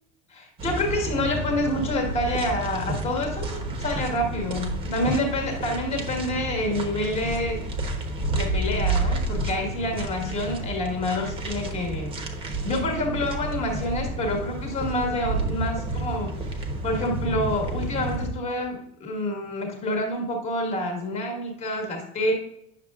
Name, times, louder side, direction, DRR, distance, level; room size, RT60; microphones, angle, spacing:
voice 1, 0.3-7.7 8.3-12.1 12.6-22.3, left 1 dB, 20° left, 2 dB, 1.5 m, -28 dB
sound 1, 0.6-18.3, right 2 dB, 20° right, 1.0 m, -30 dB
9.2 x 6.6 x 2.4 m, 0.77 s
cardioid pair, 175°, 29 cm